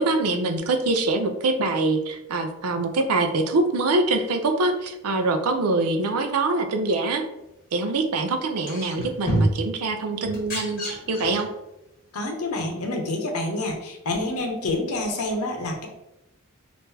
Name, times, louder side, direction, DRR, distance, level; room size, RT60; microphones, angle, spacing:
voice 1, 0.0-7.2 7.7-11.5, right 2 dB, 90° right, 6 dB, 0.5 m, -24 dB
sound 1, 8.7-9.7 10.2-11.5 12.6-12.7, right 1 dB, 40° left, 1.2 m, -27 dB
voice 2, 12.1-15.9, left 2 dB, 80° left, 2 dB, 0.7 m, -28 dB
3.6 x 2.5 x 2.7 m, 0.89 s
head